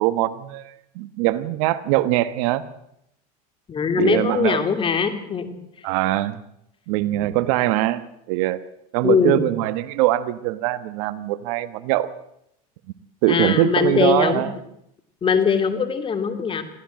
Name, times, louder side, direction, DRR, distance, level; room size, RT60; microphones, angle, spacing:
voice 1, 0.0-2.6 3.9-4.6 5.8-6.4 6.9-8.0 8.3-8.6 8.9-12.1 13.2-14.5, right 15 dB, 65° right, 14 dB, 1.4 m, -22 dB
voice 2, 3.7-5.5 9.0-9.5 13.3-14.4 15.2-16.6, left 6 dB, 25° left, 8 dB, 3.1 m, -21 dB
23.0 x 15.5 x 7.7 m, 0.78 s
supercardioid pair, 110°, 19 cm